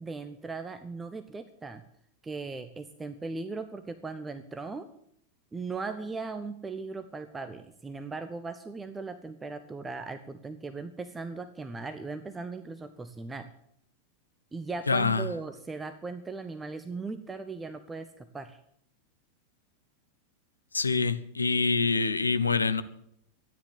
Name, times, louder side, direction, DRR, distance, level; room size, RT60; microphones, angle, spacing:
voice 1, 0.0-1.8 2.2-4.9 5.5-13.5 14.5-18.6, right 4 dB, 15° right, 10 dB, 1.0 m, -38 dB
voice 2, 14.9-15.3 20.7-22.8, left 4 dB, 80° left, 12 dB, 0.9 m, -25 dB
13.5 x 10.0 x 9.4 m, 0.71 s
figure-of-eight pair, 90°, 0 cm